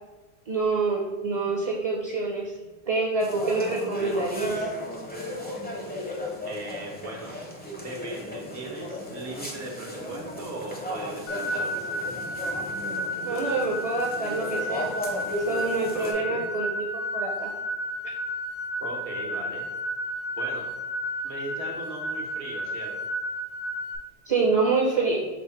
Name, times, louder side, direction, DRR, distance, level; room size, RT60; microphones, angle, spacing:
voice 1, 0.5-2.6 2.9-4.6 13.2-14.9 15.4-16.9 17.1-17.5 24.3-25.3, right 3 dB, 45° right, -1 dB, 0.5 m, -26 dB
sound 1, 3.2-16.1, left 1 dB, 15° left, 0.4 m, -35 dB
voice 2, 6.4-7.4 7.8-12.0 15.9-16.4 18.8-19.7 20.4-20.7 21.2-23.0, right 2 dB, 80° right, 0 dB, 1.2 m, -38 dB
sound 2, 11.3-24.0, equal, 70° left, 0.8 m, -32 dB
5.0 x 2.1 x 4.3 m, 1.2 s
omnidirectional pair, 1.1 m